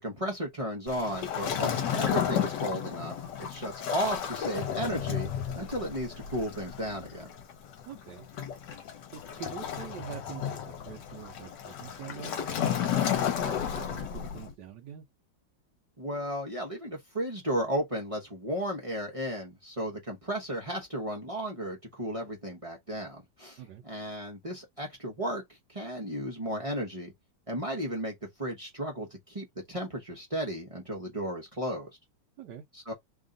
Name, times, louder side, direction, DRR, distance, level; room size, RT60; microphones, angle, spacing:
voice 1, 0.0-5.3 5.5-7.3 16.0-25.4 25.7-27.1 27.5-31.9 32.7-32.9, equal, 25° right, 0.7 m, -34 dB
Waves surf, 0.9-14.5, left 9 dB, 65° left, 1.4 m, -33 dB
voice 2, 7.8-8.3 9.1-15.0 23.6-23.8 32.4-32.6, right 8 dB, 70° right, 1.3 m, -45 dB
3.5 x 2.5 x 3.9 m
omnidirectional pair, 2.1 m